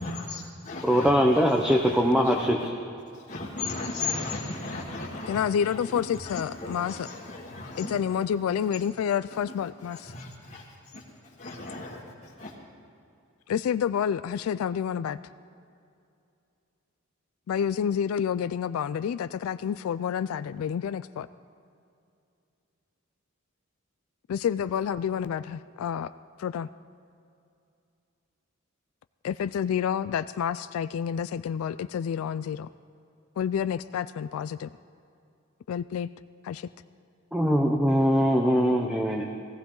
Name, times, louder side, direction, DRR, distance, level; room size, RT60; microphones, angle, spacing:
voice 1, 0.0-2.5 3.1-8.2 8.7-8.8 9.3-9.4 9.8-12.5, left 3 dB, 40° left, -6 dB, 1.6 m, -37 dB
voice 2, 0.8-2.7 37.3-39.3, equal, 5° right, 1 dB, 0.7 m, -22 dB
voice 3, 5.3-7.1 7.8-10.1 13.5-15.2 17.5-21.3 24.3-26.1 26.4-26.7 29.2-32.7 33.4-34.7 35.7-36.1 36.4-36.7, left 8 dB, 85° left, 15 dB, 0.3 m, -29 dB
19.5 x 15.0 x 3.9 m, 2.6 s
head